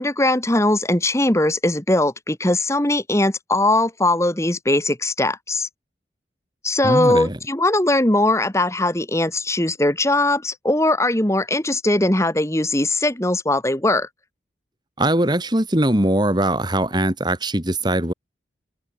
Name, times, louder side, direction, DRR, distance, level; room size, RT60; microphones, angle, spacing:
voice 1, 0.0-5.7 6.6-14.1, left 1 dB, 15° left, 1.9 m, -20 dB
voice 2, 6.8-7.4 15.0-18.1, right 1 dB, 25° right, 2.9 m, -21 dB
head